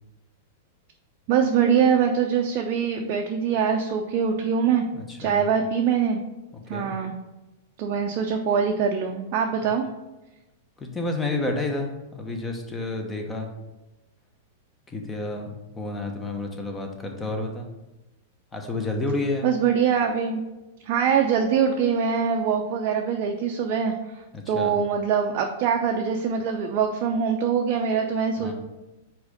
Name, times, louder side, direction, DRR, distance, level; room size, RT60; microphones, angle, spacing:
voice 1, 1.3-4.9 5.2-6.2 6.7-7.1 7.8-9.9 19.4-20.4 20.9-23.9 24.5-28.5, right 7 dB, 45° right, 2 dB, 0.6 m, -23 dB
voice 2, 4.9-5.5 6.5-6.9 10.8-13.5 14.9-17.7 18.5-19.5 24.3-24.8 28.4-28.5, left 2 dB, 15° left, 3 dB, 1.1 m, -30 dB
4.7 x 4.2 x 5.1 m, 1.0 s
figure-of-eight pair, 95°, 0 cm